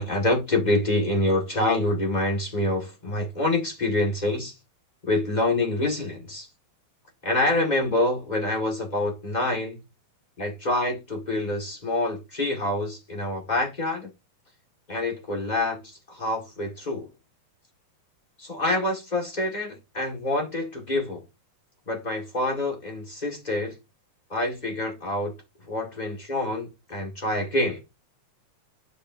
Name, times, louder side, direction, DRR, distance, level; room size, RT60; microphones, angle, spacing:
voice 1, 0.0-4.5 5.0-6.5 7.2-9.7 10.4-14.1 14.9-17.1 18.4-21.2 21.9-23.7 24.3-25.3 25.7-27.8, left 1 dB, 20° left, 1.0 m, -26 dB
11.5 x 5.2 x 2.7 m
omnidirectional pair, 4.1 m